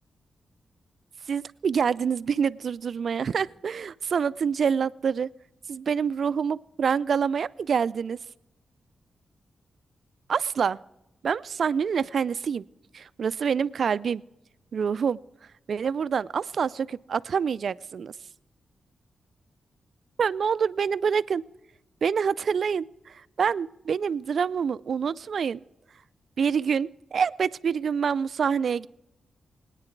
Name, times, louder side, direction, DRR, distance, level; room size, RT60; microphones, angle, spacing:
voice 1, 1.3-5.3 5.7-8.2 10.3-10.8 11.2-12.6 12.9-14.2 14.7-15.2 15.7-18.1 20.2-21.4 22.0-25.6 26.4-28.9, right 6 dB, 65° right, 19 dB, 0.4 m, -26 dB
18.5 x 9.8 x 4.6 m, 0.93 s
cardioid pair, 65°, 0 cm